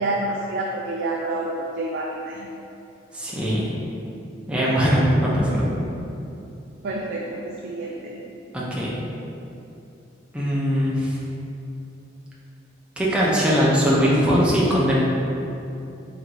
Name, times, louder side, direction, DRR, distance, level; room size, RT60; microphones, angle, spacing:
voice 1, 0.0-2.5 6.8-8.2, right 2 dB, 55° right, -2 dB, 0.3 m, -28 dB
voice 2, 3.1-3.7 4.5-5.7 8.5-8.9 10.3-11.2 13.0-14.9, equal, 5° right, -7 dB, 0.6 m, -20 dB
3.8 x 2.6 x 4.5 m, 2.8 s
head